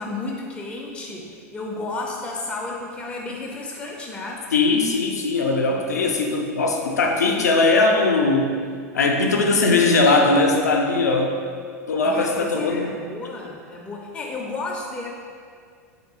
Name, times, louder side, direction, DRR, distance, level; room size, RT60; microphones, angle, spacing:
voice 1, 0.0-4.5 5.9-6.2 11.9-15.1, left 2 dB, 15° left, -2 dB, 0.3 m, -33 dB
voice 2, 4.5-8.5 8.9-11.4 11.9-13.0, left 3 dB, 85° left, 2 dB, 0.4 m, -20 dB
3.2 x 2.7 x 2.8 m, 2.1 s
hypercardioid pair, 95°, 9 cm